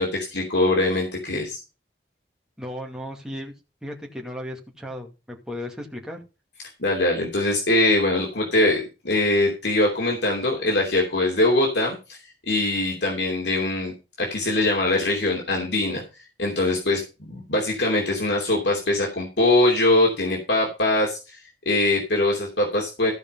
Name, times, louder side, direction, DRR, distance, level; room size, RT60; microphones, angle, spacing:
voice 1, 0.0-1.6 6.8-12.2 12.5-16.0 16.4-21.4 21.6-23.1, left 2 dB, 75° left, -1 dB, 3.0 m, -22 dB
voice 2, 2.6-3.5 3.8-6.2, left 1 dB, 5° right, 0 dB, 2.2 m, -35 dB
14.5 x 5.2 x 5.5 m, 0.30 s
head